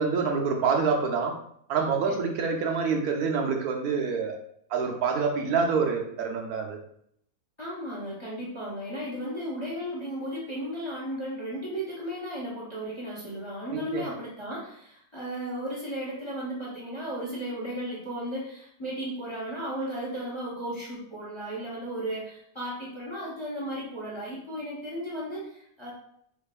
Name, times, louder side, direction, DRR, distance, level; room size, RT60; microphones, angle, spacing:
voice 1, 0.0-1.3 1.7-4.4 4.7-6.8 13.7-14.0, right 5 dB, 85° right, 2 dB, 1.1 m, -26 dB
voice 2, 7.6-25.9, equal, 25° left, -6 dB, 0.7 m, -35 dB
4.4 x 2.5 x 2.4 m, 0.69 s
omnidirectional pair, 1.5 m